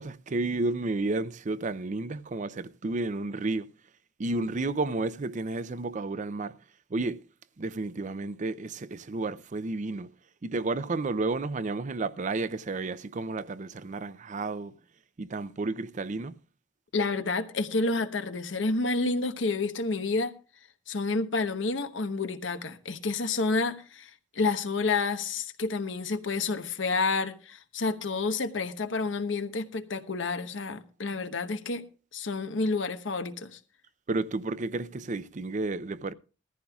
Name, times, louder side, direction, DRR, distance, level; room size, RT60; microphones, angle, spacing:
voice 1, 0.0-3.7 4.2-6.5 6.9-7.2 7.6-10.1 10.4-14.7 15.2-16.3 34.1-36.1, right 3 dB, 40° right, 0.5 m, -31 dB
voice 2, 16.9-20.3 20.9-31.8 32.1-33.6, left 3 dB, 85° left, 1.1 m, -29 dB
18.5 x 14.5 x 2.4 m
head